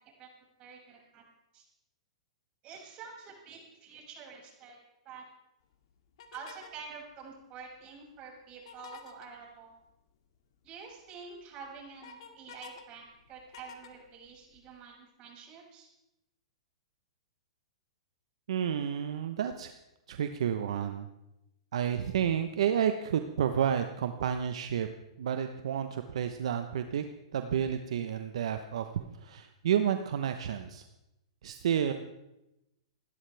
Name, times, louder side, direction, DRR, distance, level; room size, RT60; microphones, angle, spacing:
voice 1, 0.6-1.2 1.5-1.6 2.6-4.8 5.0-5.2 6.3-9.8 10.6-15.9, right 5 dB, 35° right, -2 dB, 6.6 m, -48 dB
sound 1, 6.2-6.8 8.6-9.3 10.9-11.0 11.4-12.8 13.1-14.7, left 7 dB, 60° left, 2.1 m, -50 dB
voice 2, 18.5-19.7 20.1-21.1 21.7-24.9 25.2-27.0 27.3-30.8 31.4-31.9, right 9 dB, 70° right, 8 dB, 1.0 m, -30 dB
29.0 x 12.5 x 3.5 m, 0.92 s
hypercardioid pair, 125°, 3 cm